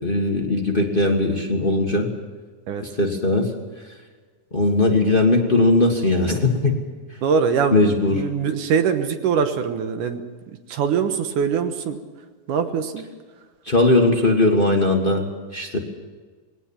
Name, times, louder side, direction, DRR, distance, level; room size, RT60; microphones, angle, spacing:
voice 1, 0.0-2.1 2.8-3.5 4.5-6.8 7.7-8.2 13.6-15.2 15.5-15.8, left 2 dB, 45° left, 1 dB, 0.6 m, -19 dB
voice 2, 7.2-10.2 10.7-12.0 12.5-13.0, right 6 dB, 70° right, 7 dB, 2.5 m, -22 dB
20.0 x 18.5 x 7.2 m, 1.5 s
omnidirectional pair, 4.1 m